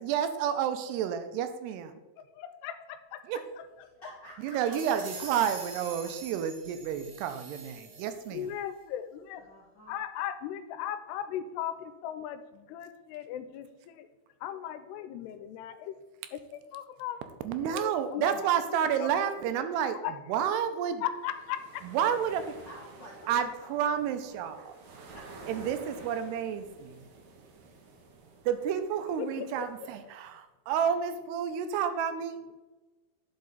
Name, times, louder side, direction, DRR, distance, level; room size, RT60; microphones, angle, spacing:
voice 1, 0.0-2.0 3.3-3.4 4.4-8.5 17.4-20.0 20.3-21.0 21.8-22.4 23.3-24.6 25.5-27.0 28.5-32.4, right 8 dB, 90° right, 9 dB, 2.7 m, -30 dB
voice 2, 2.2-3.9 8.3-9.4 9.9-14.1 14.4-16.0 16.3-17.2 17.6-19.1 20.0-20.2 21.0-21.8 29.2-29.9, left 10 dB, 85° left, 11 dB, 2.7 m, -38 dB
voice 3, 3.8-5.0 9.5-10.0 22.6-24.3 25.1-25.6, equal, 65° left, -6 dB, 1.1 m, -50 dB
sound 1, 4.4-8.4, right 4 dB, 55° right, 2.7 m, -45 dB
sound 2, 21.0-30.3, right 3 dB, 70° right, 1.8 m, -51 dB
10.5 x 5.6 x 4.0 m, 1.1 s
omnidirectional pair, 4.7 m